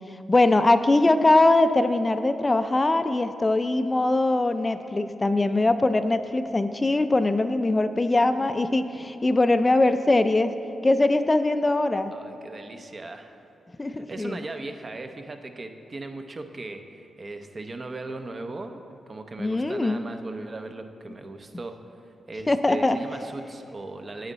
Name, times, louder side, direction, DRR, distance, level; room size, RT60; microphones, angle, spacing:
voice 1, 0.1-10.5 10.8-12.1 13.8-14.4 19.4-20.0 22.5-23.0, left 2 dB, 25° left, 10 dB, 0.4 m, -22 dB
voice 2, 12.1-13.4 13.9-21.8 22.3-24.3, right 2 dB, 35° right, 7 dB, 0.6 m, -38 dB
8.8 x 8.4 x 4.0 m, 2.9 s
cardioid pair, 80°, 0 cm